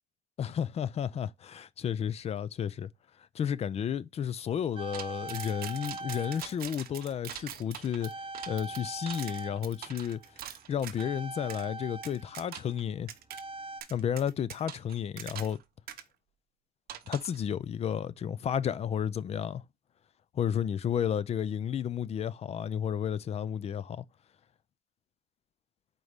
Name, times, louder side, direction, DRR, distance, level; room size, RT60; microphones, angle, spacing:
voice 1, 0.4-2.9 3.3-8.1 8.5-10.2 10.5-13.1 13.9-15.6 17.1-19.6 20.3-24.0, left 8 dB, 40° left, 0.4 m, -32 dB
sound 1, 4.8-7.7 8.0-13.8, right 2 dB, 30° right, 0.8 m, -43 dB
sound 2, 4.9-11.1 11.5-11.6 12.0-12.8 13.1-13.4 13.8-15.6 15.9-16.0 16.9-17.4, right 11 dB, 65° right, 0.7 m, -43 dB
4.6 x 4.1 x 5.0 m
cardioid pair, 110°, 17 cm